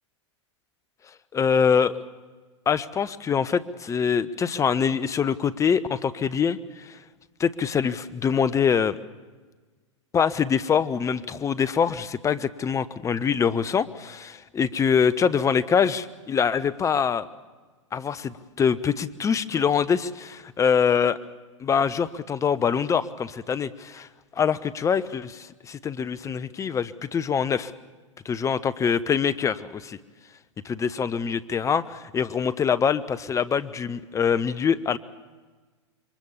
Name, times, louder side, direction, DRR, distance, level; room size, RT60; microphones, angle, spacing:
voice 1, 1.3-2.0 2.7-7.0 7.4-9.0 10.1-17.3 17.9-21.2 21.6-27.7 28.2-30.0 30.7-35.0, left 7 dB, 20° left, 15 dB, 1.0 m, -24 dB
27.0 x 23.5 x 7.2 m, 1.4 s
hypercardioid pair, 100°, 15 cm